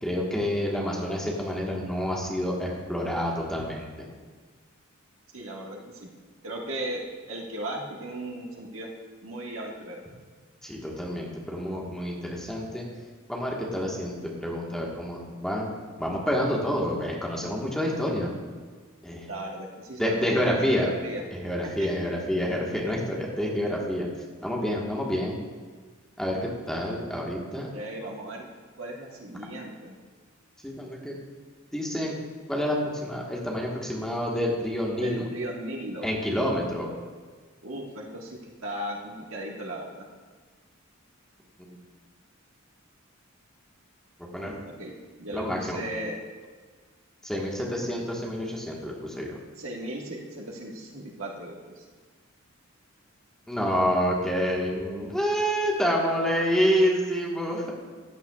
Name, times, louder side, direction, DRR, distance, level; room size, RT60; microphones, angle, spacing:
voice 1, 0.0-4.1 10.6-12.9 13.3-14.1 14.4-15.7 16.0-18.3 19.0-19.3 20.0-20.9 21.3-24.1 24.4-25.4 26.2-27.7 30.6-31.2 31.7-32.1 32.5-35.2 36.0-36.9 41.6-41.7 44.3-44.5 45.3-45.8 47.2-49.4 53.5-57.7, equal, 5° left, -3 dB, 1.4 m, -28 dB
voice 2, 5.3-6.1 6.4-7.0 7.3-8.9 9.2-10.0 19.3-20.2 20.7-21.2 21.6-21.9 27.5-28.5 28.8-29.9 34.9-36.2 37.6-40.1 44.4-46.1 49.6-51.8, right 1 dB, 75° right, -1 dB, 1.6 m, -37 dB
15.0 x 9.0 x 2.4 m, 1.5 s
head